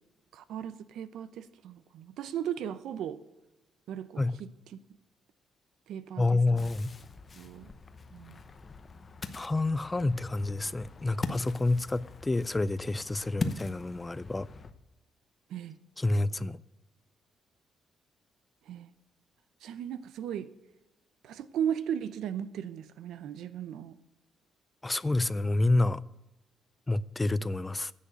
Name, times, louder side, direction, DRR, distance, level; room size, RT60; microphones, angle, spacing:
voice 1, 0.3-3.2 3.9-4.5 5.9-6.7 7.3-7.7 8.1-8.4 15.5-15.8 18.7-18.9 19.6-20.5 21.2-24.0, right 9 dB, 85° right, 0.7 m, -36 dB
voice 2, 6.2-6.9 9.3-14.5 16.0-16.6 24.8-26.0 26.9-27.9, left 2 dB, 15° left, 0.3 m, -28 dB
Ocean, 6.6-14.7, left 3 dB, 30° left, 0.8 m, -41 dB
10.0 x 7.5 x 8.0 m
cardioid pair, 130°, 0 cm